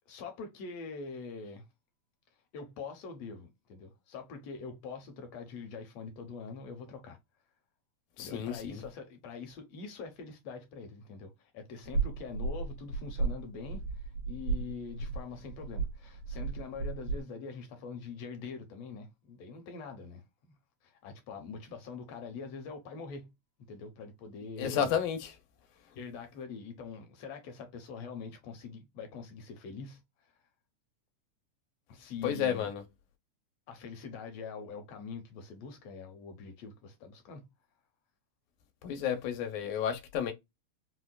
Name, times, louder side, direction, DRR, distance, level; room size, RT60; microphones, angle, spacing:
voice 1, 0.1-1.6 2.5-7.2 8.2-20.5 20.8-23.3 23.7-25.0 25.9-30.0 31.9-32.7 33.7-37.5, left 5 dB, 70° left, 1.7 m, -44 dB
voice 2, 8.2-8.8 24.6-25.3 32.2-32.8 38.8-40.3, left 8 dB, 90° left, 2.2 m, -31 dB
sound 1, 11.8-17.2, right 4 dB, 70° right, 1.8 m, -35 dB
5.1 x 2.1 x 2.2 m
omnidirectional pair, 3.4 m